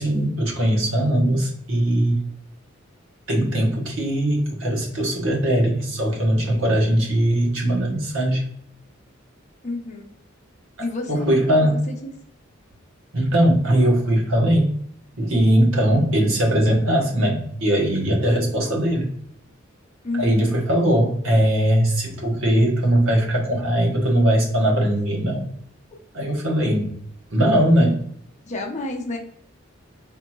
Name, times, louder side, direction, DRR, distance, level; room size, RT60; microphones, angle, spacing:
voice 1, 0.0-2.2 3.3-8.4 11.1-11.8 13.1-14.8 15.2-19.1 20.1-25.4 26.1-26.9 27.3-28.0, right 1 dB, 85° right, 0 dB, 1.1 m, -20 dB
voice 2, 9.6-10.0 10.8-11.4 11.7-12.1 20.0-20.5 28.5-29.2, left 2 dB, 35° left, 1 dB, 0.7 m, -29 dB
3.7 x 2.8 x 2.2 m, 0.66 s
head